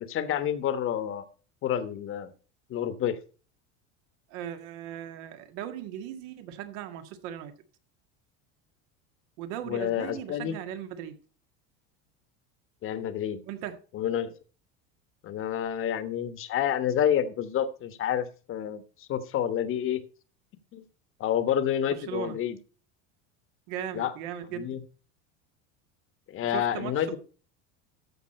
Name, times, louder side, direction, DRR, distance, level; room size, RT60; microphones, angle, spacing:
voice 1, 0.1-1.2 1.6-2.3 2.7-3.2 9.7-10.5 12.8-13.4 13.9-14.3 15.2-20.0 20.7-20.8 21.2-22.6 23.9-24.1 24.5-24.8 26.3-27.2, left 10 dB, 40° left, 1.3 m, -29 dB
voice 2, 4.3-7.5 9.4-11.1 13.4-13.8 22.1-22.4 23.7-24.8 26.5-27.2, right 10 dB, 70° right, 1.9 m, -38 dB
14.0 x 5.8 x 4.3 m
supercardioid pair, 130°, 34 cm